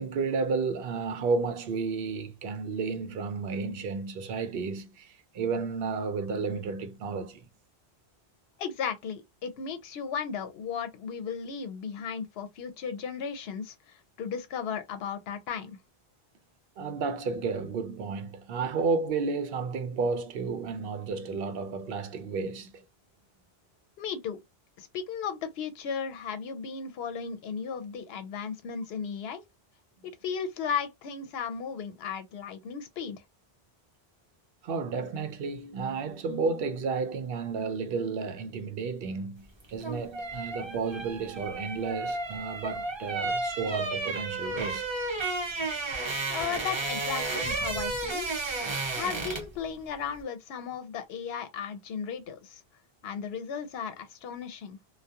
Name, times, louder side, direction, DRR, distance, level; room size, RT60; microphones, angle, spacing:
voice 1, 0.0-7.4 16.8-22.8 34.6-44.8, right 4 dB, 70° right, 0.7 m, -32 dB
voice 2, 8.6-15.8 24.0-24.4 24.8-29.4 30.0-33.2 46.3-48.3 48.9-52.6 53.0-54.8, left 7 dB, 75° left, 0.8 m, -35 dB
sound 1, 39.6-49.6 49.9-50.1, right 3 dB, 35° right, 0.6 m, -32 dB
2.3 x 2.2 x 2.7 m
omnidirectional pair, 1.0 m